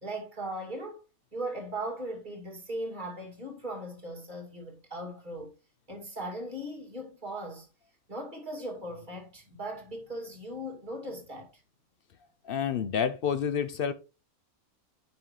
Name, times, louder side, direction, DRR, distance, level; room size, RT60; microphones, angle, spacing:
voice 1, 0.0-1.0 1.3-5.5 5.9-7.7 8.1-11.5, right 1 dB, 30° right, 2.6 m, -38 dB
voice 2, 12.4-13.9, left 7 dB, 65° left, 0.5 m, -29 dB
9.2 x 5.3 x 3.2 m
omnidirectional pair, 1.6 m